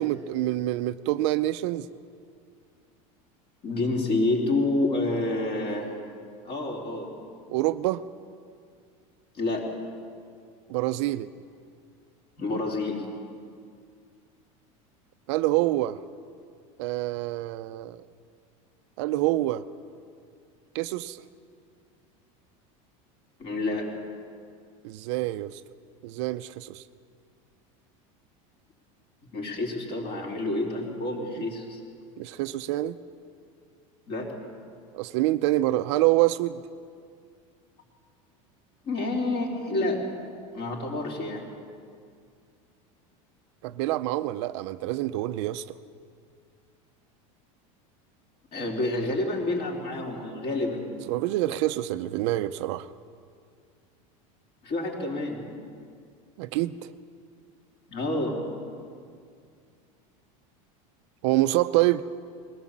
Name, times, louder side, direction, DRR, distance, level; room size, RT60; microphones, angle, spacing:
voice 1, 0.0-1.9 7.5-8.0 10.7-11.3 15.3-16.0 16.8-18.0 19.0-19.6 20.7-21.2 24.8-25.6 26.0-26.8 32.2-33.0 34.9-36.6 43.6-45.7 51.1-52.9 56.4-56.9 61.2-62.0, right 16 dB, 55° right, 12 dB, 0.6 m, -26 dB
voice 2, 3.6-5.9 6.4-7.1 9.4-9.7 12.4-13.0 23.4-23.9 29.3-31.8 34.1-34.3 38.8-40.0 40.5-41.4 48.5-50.8 54.6-55.6 57.9-58.4, left 2 dB, 30° left, 0 dB, 3.8 m, -28 dB
21.5 x 18.5 x 7.4 m, 2.2 s
supercardioid pair, 175°, 17 cm